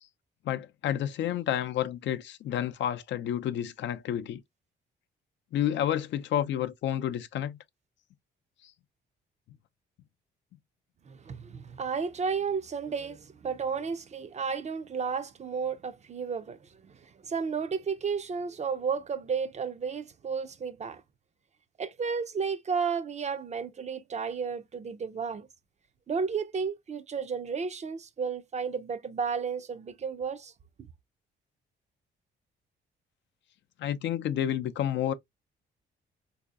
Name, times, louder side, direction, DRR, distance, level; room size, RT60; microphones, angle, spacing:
voice 1, 0.4-4.4 5.5-7.6 8.6-8.7 33.8-35.1, left 10 dB, 70° left, 0.5 m, -30 dB
voice 2, 11.1-21.0 21.8-25.5 26.1-30.5 30.8-30.9, right 5 dB, 35° right, 0.5 m, -33 dB
3.8 x 2.7 x 2.3 m
cardioid pair, 90°, 20 cm